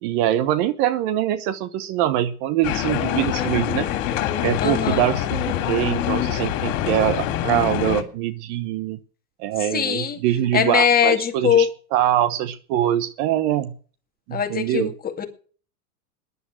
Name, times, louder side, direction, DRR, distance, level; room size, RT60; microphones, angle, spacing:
voice 1, 0.0-3.9 4.4-9.0 9.4-13.7 14.3-14.9, right 12 dB, 45° right, 14 dB, 1.0 m, -23 dB
sound 1, 2.6-8.0, left 11 dB, 50° left, 2.9 m, -25 dB
voice 2, 4.6-5.0 9.7-10.2 10.5-11.7 14.3-15.2, left 8 dB, 20° left, 5 dB, 2.2 m, -21 dB
14.5 x 11.0 x 6.3 m, 0.41 s
hypercardioid pair, 120°, 46 cm